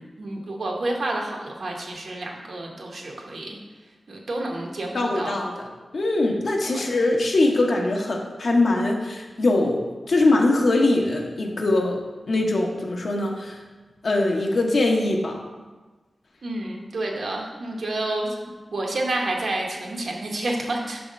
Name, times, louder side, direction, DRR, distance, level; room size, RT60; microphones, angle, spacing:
voice 1, 0.0-3.6 4.1-5.4 6.7-6.8 16.4-18.3 18.7-21.0, right 2 dB, 70° right, 0 dB, 1.0 m, -29 dB
voice 2, 4.9-5.7 5.9-12.0 12.3-13.6 14.0-15.4, left 2 dB, 65° left, 1 dB, 0.9 m, -22 dB
6.0 x 3.5 x 5.2 m, 1.3 s
wide cardioid pair, 110°, 0 cm